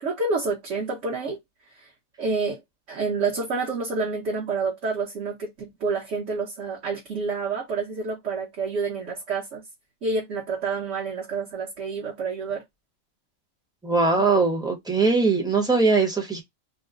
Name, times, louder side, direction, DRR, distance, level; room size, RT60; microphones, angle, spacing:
voice 1, 0.0-1.4 1.7-1.9 2.2-2.6 2.9-9.6 10.0-12.6, right 4 dB, 60° right, 1.2 m, -28 dB
voice 2, 13.8-16.4, right 4 dB, 5° right, 0.7 m, -21 dB
3.0 x 2.1 x 3.6 m
omnidirectional pair, 1.5 m